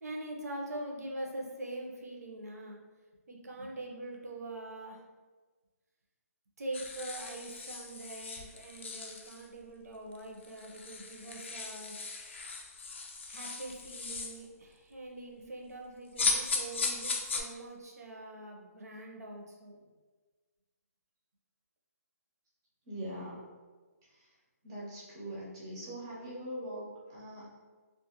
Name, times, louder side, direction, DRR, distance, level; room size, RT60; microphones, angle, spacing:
voice 1, 0.0-2.8 3.3-5.0 6.6-12.0 13.3-19.8, right 2 dB, 75° right, 0 dB, 0.6 m, -43 dB
sound 1, 6.7-9.5 10.1-10.2 10.4-14.4 16.2-17.4, left 4 dB, 45° left, 0.3 m, -37 dB
voice 2, 22.9-23.4 24.1-24.3 24.6-27.5, equal, 15° right, -6 dB, 0.5 m, -42 dB
2.4 x 2.4 x 2.8 m, 1.4 s
hypercardioid pair, 175°, 9 cm